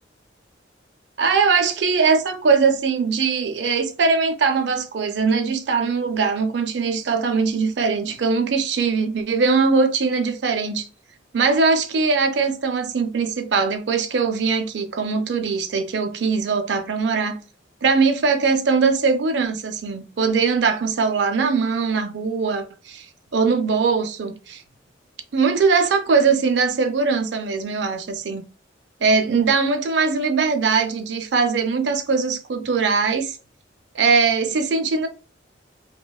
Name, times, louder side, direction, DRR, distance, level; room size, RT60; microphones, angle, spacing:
voice 1, 1.2-10.9 11.3-17.4 17.8-23.1 23.3-24.6 25.3-28.4 29.0-33.4 33.9-35.1, right 5 dB, 65° right, 0.4 m, -21 dB
3.0 x 2.1 x 2.2 m
head